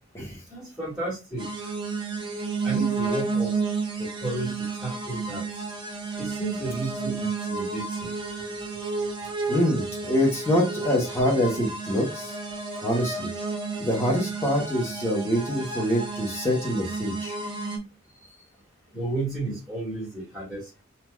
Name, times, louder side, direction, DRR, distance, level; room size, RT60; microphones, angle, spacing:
voice 1, 0.5-1.5 2.6-3.5 4.0-4.5 4.8-5.4 6.2-8.1 18.9-20.8, right 2 dB, 5° right, -9 dB, 1.5 m, -32 dB
sound 1, 1.4-17.8, right 4 dB, 20° right, 0.5 m, -31 dB
voice 2, 9.5-12.3 12.8-13.3 13.8-17.4, equal, 10° left, -2 dB, 0.9 m, -25 dB
3.2 x 2.5 x 2.3 m, 0.28 s
head